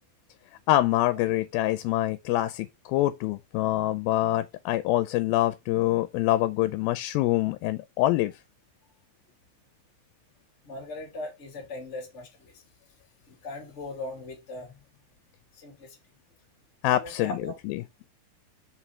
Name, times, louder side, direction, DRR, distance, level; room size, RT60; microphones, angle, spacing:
voice 1, 0.7-8.3 16.8-17.3 17.7-17.8, left 15 dB, 85° left, 2.4 m, -25 dB
voice 2, 10.6-12.6 13.2-14.8 15.5-16.0 16.9-17.6, left 2 dB, 20° left, 2.3 m, -39 dB
5.6 x 4.8 x 5.6 m
omnidirectional pair, 4.2 m